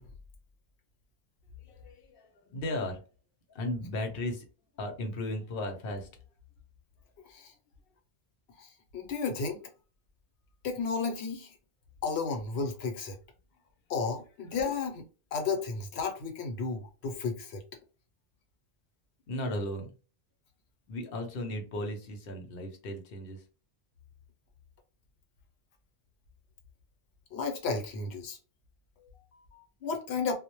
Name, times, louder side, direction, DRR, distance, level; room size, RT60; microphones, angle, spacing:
voice 1, 1.6-3.0 3.5-4.5 4.8-6.1 19.3-19.9 20.9-23.4 29.0-29.6, left 1 dB, 65° left, 0.8 m, -36 dB
voice 2, 8.6-9.6 10.6-11.5 12.0-13.2 13.9-15.0 15.3-17.6 27.3-28.4 29.8-30.3, left 4 dB, 90° left, 0.9 m, -33 dB
2.1 x 2.0 x 2.9 m
omnidirectional pair, 1.1 m